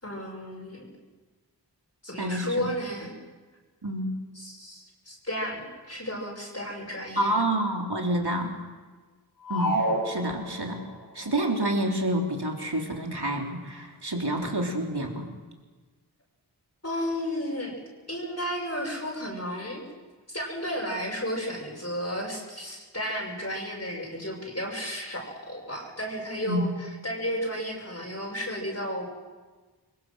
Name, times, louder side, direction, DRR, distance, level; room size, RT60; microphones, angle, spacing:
voice 1, 0.0-0.8 2.0-3.2 4.4-7.5 16.8-17.8 18.1-19.8 20.3-26.7 27.0-29.1, equal, 40° left, -2 dB, 5.9 m, -33 dB
voice 2, 2.2-2.7 3.8-4.1 7.2-8.6 9.5-10.9 11.1-15.3 26.4-26.7, right 1 dB, 70° right, 1 dB, 3.6 m, -28 dB
sound 1, 9.5-10.9, right 1 dB, 55° left, 6.5 m, -28 dB
26.0 x 23.0 x 6.3 m, 1.3 s
wide cardioid pair, 40°, 41 cm